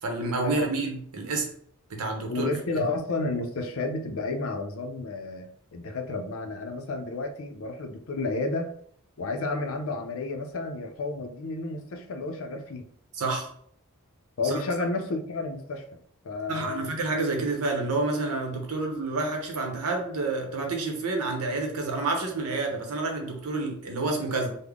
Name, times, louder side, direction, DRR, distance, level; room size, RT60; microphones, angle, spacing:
voice 1, 0.0-1.5 1.9-2.5 13.1-13.5 14.4-14.6 16.5-24.6, right 3 dB, 80° right, 2 dB, 0.8 m, -29 dB
voice 2, 2.3-8.7 9.2-12.9 14.4-15.8 16.2-16.9, left 3 dB, 65° left, 6 dB, 0.5 m, -31 dB
3.4 x 2.1 x 3.5 m, 0.62 s
head